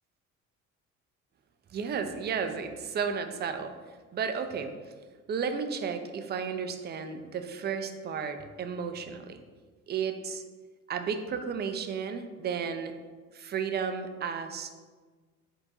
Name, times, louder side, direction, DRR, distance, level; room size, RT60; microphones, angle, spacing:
voice 1, 1.7-3.7 4.1-4.7 5.3-9.4 9.9-10.4 10.9-12.9 13.3-14.7, right 6 dB, 25° right, 8 dB, 0.4 m, -33 dB
4.3 x 3.9 x 2.6 m, 1.4 s
hypercardioid pair, 55°, 40 cm